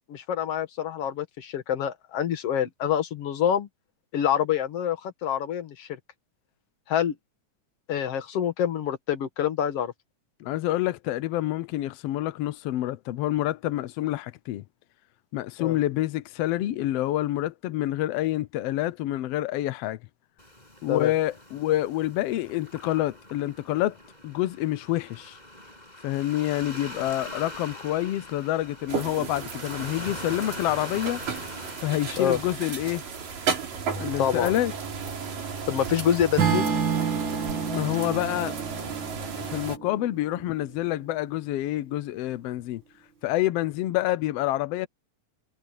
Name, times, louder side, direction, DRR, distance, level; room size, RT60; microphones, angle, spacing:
voice 1, 0.1-3.7 4.1-5.9 6.9-7.2 7.9-9.9 15.6-15.8 20.9-21.1 32.2-32.4 34.2-34.5 35.7-36.7, left 9 dB, 55° left, 2.3 m, -26 dB
voice 2, 10.4-14.6 15.3-20.0 20.8-24.0 24.2-25.4 26.0-31.2 31.8-33.0 34.0-34.7 37.6-38.5 39.4-42.8 43.2-44.9, left 14 dB, 85° left, 1.3 m, -27 dB
Waves surf, 20.4-38.2, left 1 dB, 10° left, 6.8 m, -44 dB
sound 1, 28.9-39.8, right 6 dB, 80° right, 5.3 m, -34 dB
Acoustic guitar / Strum, 36.4-40.6, right 6 dB, 40° right, 2.1 m, -29 dB
omnidirectional pair, 3.8 m